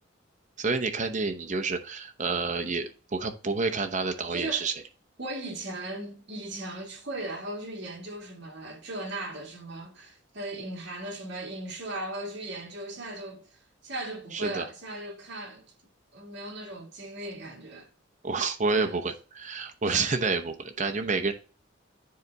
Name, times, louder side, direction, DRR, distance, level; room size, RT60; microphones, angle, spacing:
voice 1, 0.6-4.7 14.3-14.6 18.2-21.3, right 4 dB, 40° right, 0.8 m, -29 dB
voice 2, 4.3-4.7 5.2-13.4 13.8-15.6 16.1-17.9 18.7-19.0 19.9-20.1 20.8-21.1, right 1 dB, 60° right, 2.3 m, -38 dB
9.6 x 3.5 x 3.9 m
head